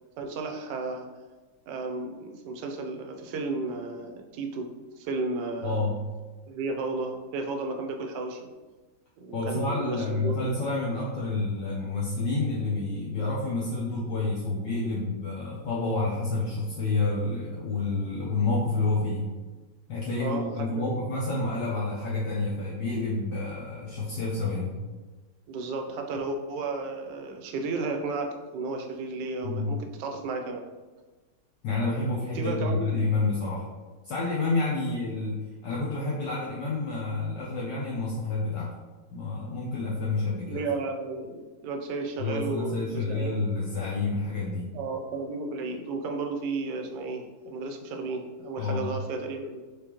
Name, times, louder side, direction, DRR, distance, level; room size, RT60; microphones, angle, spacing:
voice 1, 0.2-1.1 1.7-5.9 6.5-8.5 9.2-10.6 20.2-21.0 25.5-30.6 32.3-33.0 40.5-43.4 44.7-49.6, right 3 dB, 70° right, 4 dB, 1.1 m, -33 dB
voice 2, 5.6-6.0 9.3-19.3 19.9-24.8 29.4-29.7 31.6-33.6 34.0-35.3 35.6-38.7 39.1-40.6 42.2-44.7 48.6-48.9, left 3 dB, 65° left, -5 dB, 1.2 m, -29 dB
4.9 x 3.4 x 3.0 m, 1.3 s
omnidirectional pair, 2.2 m